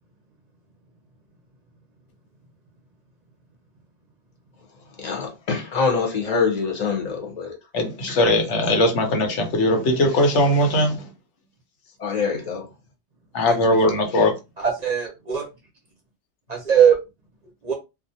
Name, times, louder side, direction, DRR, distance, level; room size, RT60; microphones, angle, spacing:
voice 1, 5.0-7.5 12.0-12.6, left 5 dB, 45° left, 0.7 m, -24 dB
voice 2, 7.7-11.1 13.3-14.4, left 1 dB, 90° left, 1.1 m, -20 dB
voice 3, 9.9-10.3 13.5-13.6 14.6-15.5 16.5-17.0 17.6-17.7, right 8 dB, 50° right, 0.5 m, -20 dB
2.4 x 2.1 x 2.7 m
omnidirectional pair, 1.2 m